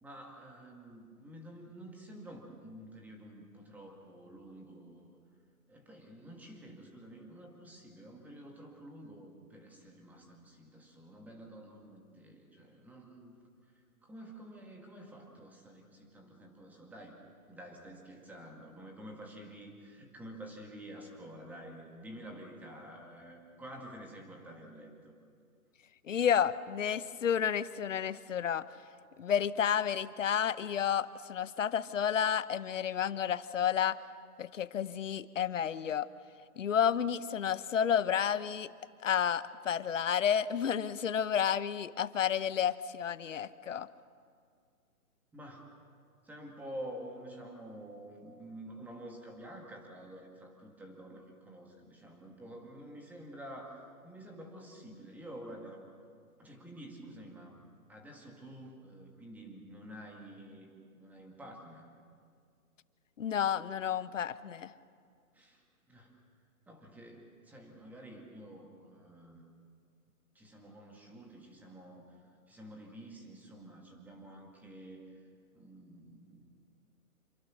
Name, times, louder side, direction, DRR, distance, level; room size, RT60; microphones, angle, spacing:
voice 1, 0.0-5.2 5.7-13.4 13.7-17.2 17.5-25.2 45.3-45.7 46.2-55.9 56.4-57.6 57.9-61.9 65.3-66.1 66.7-69.4 70.3-72.2 72.5-75.1 75.6-76.4, right 1 dB, 5° right, 1 dB, 2.1 m, -49 dB
voice 2, 26.1-28.7 29.2-34.0 34.4-36.1 36.6-38.7 39.0-43.9 63.2-64.7, left 8 dB, 55° left, 15 dB, 1.0 m, -31 dB
27.5 x 25.0 x 6.4 m, 2.1 s
hypercardioid pair, 150°, 46 cm